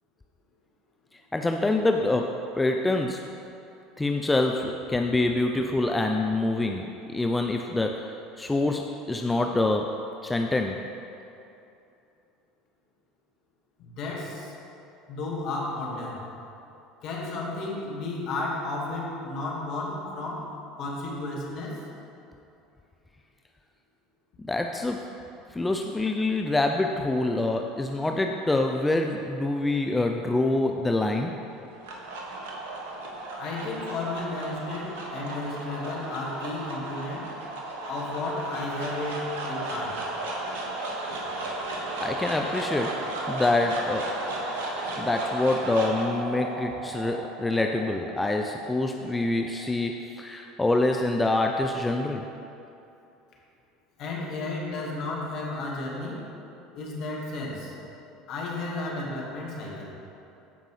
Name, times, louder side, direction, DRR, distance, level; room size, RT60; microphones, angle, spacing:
voice 1, 1.3-3.2 4.0-8.1 8.4-9.9 10.2-10.8 24.4-25.0 25.5-31.3 42.0-43.0 43.3-44.1 45.0-52.2, left 2 dB, 15° left, 3 dB, 0.5 m, -26 dB
voice 2, 13.8-14.5 15.1-16.3 17.0-21.8 33.4-37.4 37.8-40.1 54.0-56.3 56.7-57.7 58.3-59.9, left 2 dB, 55° left, -2 dB, 1.8 m, -33 dB
sound 1, 31.5-49.8, right 2 dB, 70° right, 1.2 m, -35 dB
14.0 x 5.3 x 3.2 m, 2.8 s
hypercardioid pair, 75°, 0 cm